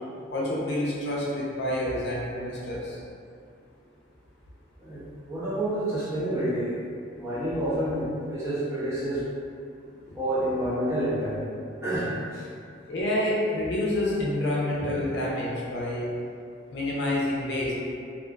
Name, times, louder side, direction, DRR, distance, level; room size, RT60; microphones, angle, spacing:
voice 1, 0.3-3.0 10.1-10.2 12.9-16.1 16.7-17.7, left 1 dB, 60° left, -5 dB, 0.5 m, -28 dB
voice 2, 4.8-6.7 7.2-9.3 10.1-11.4 11.8-12.5, right 1 dB, 15° right, -11 dB, 0.5 m, -28 dB
2.5 x 2.3 x 2.3 m, 2.4 s
head